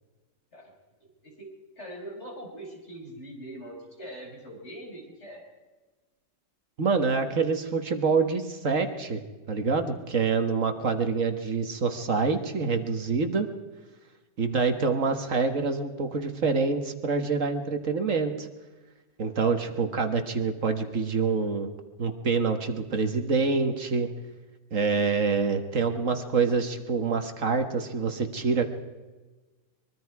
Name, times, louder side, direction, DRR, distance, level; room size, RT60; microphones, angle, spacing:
voice 1, 1.8-5.5, right 1 dB, 50° left, -1 dB, 5.6 m, -42 dB
voice 2, 6.8-9.2 9.5-13.5 14.4-18.5 19.2-21.7 22.0-24.1 24.7-28.6, right 4 dB, 65° right, 7 dB, 1.8 m, -26 dB
24.0 x 22.5 x 4.8 m, 1.2 s
omnidirectional pair, 1.5 m